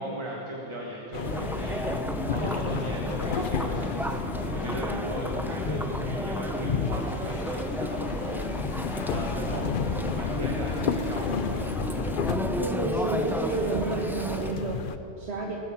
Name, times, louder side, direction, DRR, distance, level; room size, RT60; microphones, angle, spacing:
voice 1, 0.0-9.9 10.1-11.7, right 1 dB, 25° right, -2 dB, 1.5 m, -38 dB
sound 1, 1.1-15.0, left 6 dB, 60° left, 0.8 m, -32 dB
Chatter, 1.2-14.5, equal, ahead, 0.5 m, -32 dB
voice 2, 12.6-15.6, right 2 dB, 85° right, 0 dB, 1.5 m, -30 dB
19.5 x 9.1 x 7.2 m, 2.9 s
omnidirectional pair, 1.1 m